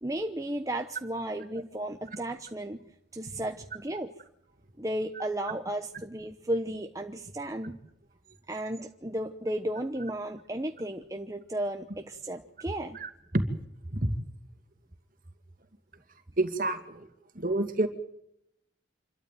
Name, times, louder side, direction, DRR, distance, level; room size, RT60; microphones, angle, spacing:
voice 1, 0.0-2.8 3.1-4.1 4.8-7.8 8.5-13.0, right 1 dB, 15° right, 5 dB, 0.9 m, -34 dB
voice 2, 12.9-13.4 13.9-14.1 16.4-17.1 17.3-17.9, right 2 dB, 45° right, 7 dB, 2.4 m, -29 dB
27.0 x 13.0 x 9.2 m, 0.77 s
head